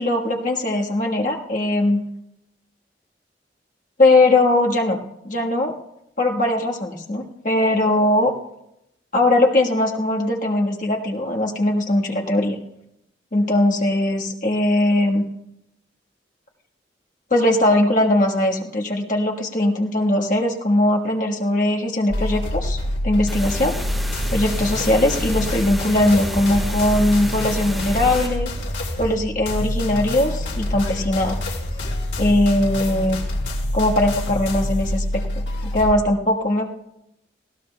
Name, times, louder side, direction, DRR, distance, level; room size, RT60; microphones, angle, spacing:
voice 1, 0.0-2.0 4.0-5.7 6.2-8.3 9.1-12.6 13.3-15.2 17.3-23.7 24.3-28.5 29.0-31.4 32.2-33.2 33.7-35.2 35.7-36.6, left 1 dB, 45° left, -1 dB, 1.4 m, -20 dB
sound 1, 22.1-35.9, left 1 dB, 80° left, 2.7 m, -26 dB
sound 2, 23.3-28.3, equal, ahead, 2.8 m, -32 dB
20.0 x 16.5 x 2.2 m, 0.83 s
head